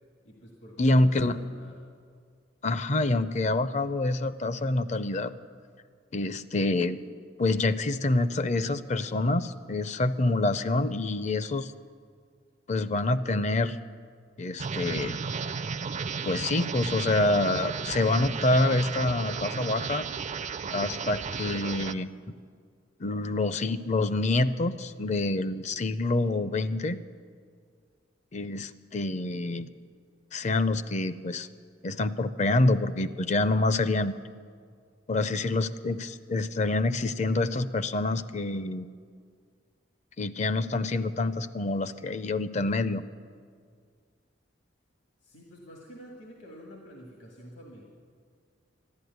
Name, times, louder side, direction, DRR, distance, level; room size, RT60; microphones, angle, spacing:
voice 1, 0.2-1.8 45.2-47.8, equal, 80° left, -1 dB, 1.9 m, -48 dB
voice 2, 0.8-1.4 2.6-5.3 6.1-7.0 7.4-11.7 12.7-13.8 14.4-15.1 16.2-20.0 20.7-22.1 23.0-27.0 28.3-29.7 30.3-31.5 31.8-34.2 35.1-38.9 40.2-43.0, left 2 dB, 40° left, 13 dB, 0.5 m, -27 dB
sound 1, 14.6-21.9, right 5 dB, 40° right, 0.4 m, -34 dB
13.0 x 11.5 x 9.4 m, 2.1 s
head